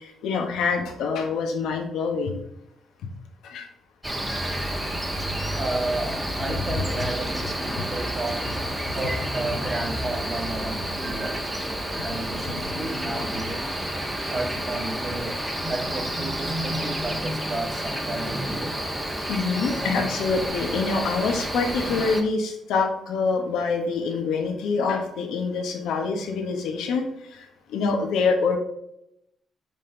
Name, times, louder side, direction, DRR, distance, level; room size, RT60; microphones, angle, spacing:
voice 1, 0.0-2.5 3.0-3.1 3.4-3.6 7.0-7.1 7.8-7.9 12.4-12.9 19.3-27.1 27.7-28.6, left 4 dB, 85° left, 3 dB, 1.4 m, -26 dB
Cricket, 4.0-22.2, equal, 10° right, 1.3 m, -30 dB
voice 2, 5.5-8.4 8.9-11.4 11.9-13.6 14.3-15.4 15.7-18.7, right 2 dB, 30° right, 1 dB, 1.8 m, -32 dB
5.3 x 5.3 x 3.9 m, 0.79 s
cardioid pair, 90°, 0 cm